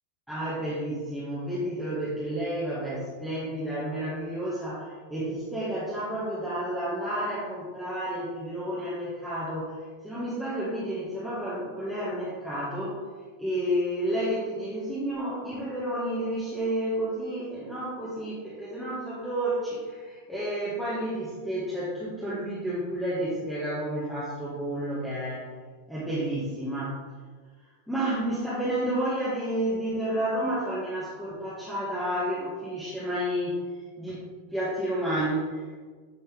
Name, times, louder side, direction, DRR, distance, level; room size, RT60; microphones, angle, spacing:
voice 1, 0.3-9.8 10.0-13.0 13.4-25.5 25.9-27.0 27.9-34.2 34.5-35.6, right 1 dB, ahead, -9 dB, 1.8 m, -31 dB
9.5 x 5.2 x 3.8 m, 1.5 s
figure-of-eight pair, 90°, 0 cm